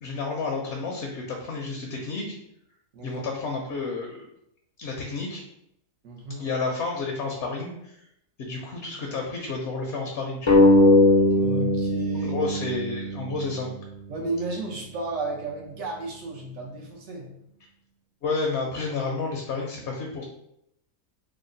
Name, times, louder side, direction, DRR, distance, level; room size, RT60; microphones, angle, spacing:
voice 1, 0.0-2.3 3.0-4.3 4.8-5.4 6.4-8.0 8.4-10.6 12.2-13.7 18.2-20.2, left 3 dB, 65° left, 0 dB, 0.8 m, -31 dB
voice 2, 2.9-3.2 6.0-6.5 8.4-8.6 11.3-12.4 14.1-17.3, right 2 dB, 75° right, -1 dB, 1.3 m, -33 dB
sound 1, 10.5-13.7, left 1 dB, 45° left, 0.3 m, -20 dB
3.5 x 2.1 x 3.8 m, 0.78 s
omnidirectional pair, 1.4 m